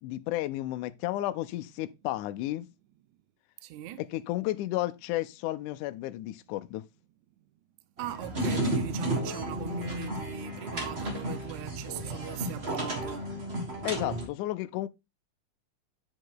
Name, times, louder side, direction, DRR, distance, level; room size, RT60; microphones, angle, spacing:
voice 1, 0.0-2.7 4.0-6.8 13.8-14.9, left 16 dB, 80° left, 1.9 m, -32 dB
voice 2, 3.6-4.0 8.0-13.3, right 14 dB, 75° right, 1.9 m, -40 dB
sound 1, 8.0-14.3, right 1 dB, 35° right, 1.0 m, -33 dB
8.6 x 5.2 x 3.8 m
omnidirectional pair, 3.8 m